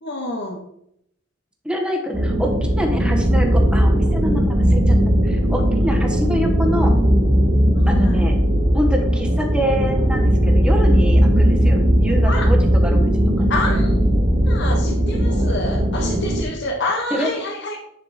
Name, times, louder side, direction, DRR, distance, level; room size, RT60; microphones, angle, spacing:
voice 1, 0.0-0.6 7.7-8.2 12.2-12.5 13.5-13.9 14.5-17.8, left 2 dB, 60° left, 1 dB, 1.0 m, -27 dB
voice 2, 1.6-7.0 7.9-8.4 8.7-13.1 13.4-13.5 17.1-17.3, equal, 5° right, 2 dB, 1.2 m, -26 dB
sound 1, 2.1-16.4, equal, 50° right, 1.7 m, -17 dB
10.0 x 4.6 x 4.2 m, 0.76 s
head